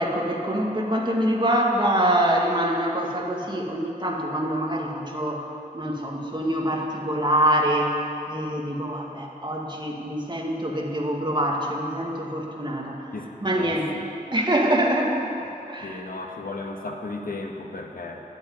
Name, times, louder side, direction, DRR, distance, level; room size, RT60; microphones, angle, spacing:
voice 1, 0.0-5.5 5.7-13.1 13.4-13.9 14.3-15.2 15.7-16.3, right 1 dB, 30° right, -1 dB, 2.0 m, -25 dB
voice 2, 13.5-14.0 15.8-18.2, left 3 dB, 65° left, 2 dB, 1.4 m, -34 dB
12.0 x 7.9 x 9.6 m, 2.8 s
wide cardioid pair, 80°, 16 cm